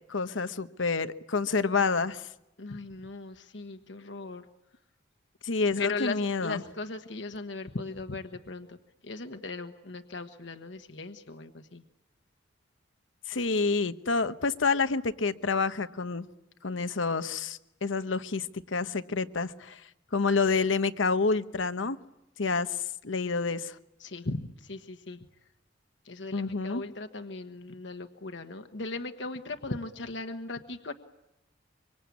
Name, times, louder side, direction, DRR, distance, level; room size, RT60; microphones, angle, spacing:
voice 1, 0.1-2.3 5.4-6.6 13.3-16.3 16.6-19.8 20.1-22.0 22.4-22.8 23.0-23.7 26.3-26.8, left 4 dB, 85° left, 12 dB, 1.0 m, -28 dB
voice 2, 2.6-4.4 5.8-8.8 9.0-11.8 24.0-25.2 26.0-30.9, left 3 dB, 65° left, 6 dB, 1.3 m, -38 dB
25.0 x 24.5 x 8.5 m, 0.90 s
head